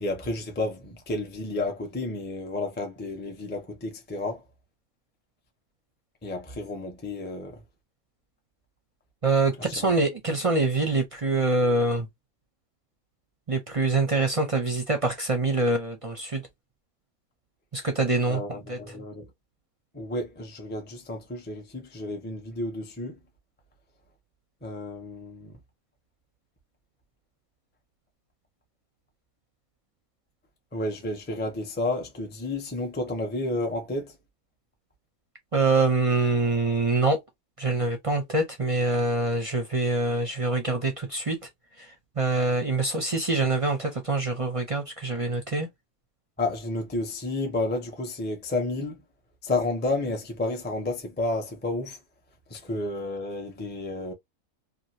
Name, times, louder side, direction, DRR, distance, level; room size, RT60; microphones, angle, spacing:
voice 1, 0.0-4.4 6.2-7.6 9.7-9.9 18.3-19.3 19.9-23.2 24.6-25.5 30.7-34.1 46.4-49.0 49.4-52.0 52.5-54.1, left 2 dB, 10° left, 0.6 m, -31 dB
voice 2, 9.2-12.1 13.5-16.4 17.7-18.4 18.7-18.8 35.5-37.2 37.6-41.4 42.2-45.7, right 3 dB, 40° right, 0.5 m, -25 dB
3.0 x 2.5 x 2.6 m
omnidirectional pair, 1.5 m